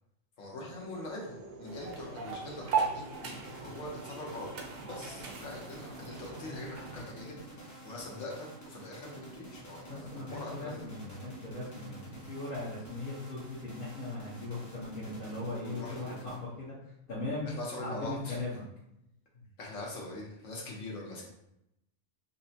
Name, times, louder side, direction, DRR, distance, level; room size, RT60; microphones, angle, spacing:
voice 1, 0.4-10.9 15.6-16.4 17.5-18.4 19.6-21.3, left 2 dB, 70° left, -2 dB, 1.2 m, -43 dB
sound 1, 0.6-8.1, right 3 dB, 80° right, 1.1 m, -54 dB
sound 2, 1.6-7.0, right 5 dB, 60° right, 0.7 m, -37 dB
sound 3, 3.1-16.8, right 1 dB, 20° left, 0.5 m, -49 dB
voice 2, 9.8-17.5 17.8-18.6 19.3-19.4, left 2 dB, 45° left, -10 dB, 1.1 m, -39 dB
5.2 x 2.1 x 2.7 m, 0.83 s
omnidirectional pair, 1.4 m